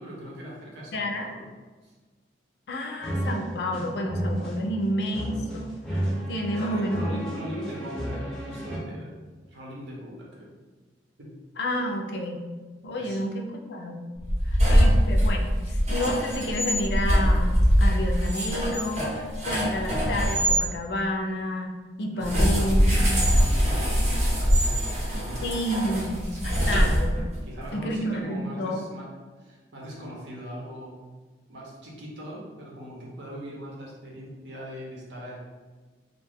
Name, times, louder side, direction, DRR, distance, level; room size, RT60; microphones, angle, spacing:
voice 1, 0.0-1.5 1.8-1.9 6.5-9.1 9.5-10.5 11.2-11.4 13.0-13.3 14.5-14.7 22.1-26.0 26.2-26.6 27.4-29.1 29.4-31.0 31.5-35.4, equal, 75° right, -4 dB, 0.8 m, -40 dB
voice 2, 0.9-1.3 2.7-7.2 11.6-12.4 12.8-14.0 14.4-23.2 25.4-27.2 27.7-28.9, equal, 65° left, 2 dB, 0.4 m, -30 dB
sound 1, 3.0-8.8, right 1 dB, 5° left, 0.5 m, -32 dB
sound 2, 14.2-20.6 22.2-27.4, equal, 35° right, 0.7 m, -23 dB
2.5 x 2.2 x 3.4 m, 1.3 s
head